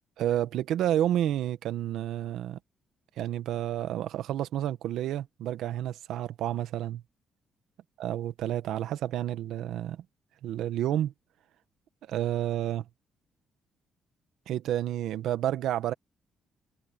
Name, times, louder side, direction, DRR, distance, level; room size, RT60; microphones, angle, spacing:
voice 1, 0.2-2.6 3.2-7.0 8.0-10.0 10.4-11.1 12.1-12.8 14.5-15.9, right 12 dB, 80° right, 1.3 m, -30 dB
cardioid pair, 90°, 0 cm